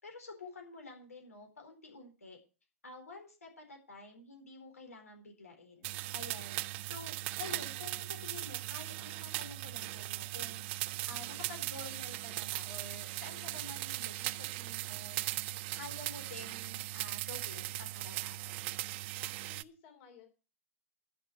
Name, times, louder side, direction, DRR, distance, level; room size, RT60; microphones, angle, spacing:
voice 1, 0.0-2.4 2.8-6.6 6.9-10.6 11.1-15.3 15.7-18.6, left 3 dB, 90° left, 3 dB, 4.1 m, -50 dB
sound 1, 5.8-19.6, right 18 dB, 50° right, 0.5 m, -39 dB
voice 2, 19.2-20.3, left 6 dB, 55° left, 5 dB, 3.0 m, -57 dB
11.5 x 6.3 x 7.8 m, 0.34 s
hypercardioid pair, 105°, 8 cm